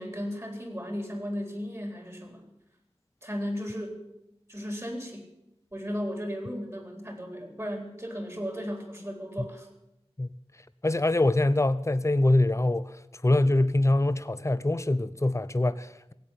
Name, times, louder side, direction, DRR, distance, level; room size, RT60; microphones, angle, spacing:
voice 1, 0.0-2.5 3.2-4.0 4.5-5.2 5.7-9.7, equal, 25° right, 3.8 m, -35 dB
voice 2, 10.8-13.0 13.2-16.1, left 2 dB, 25° left, 0.7 m, -24 dB
17.0 x 8.5 x 9.9 m
wide cardioid pair, 45°, 11 cm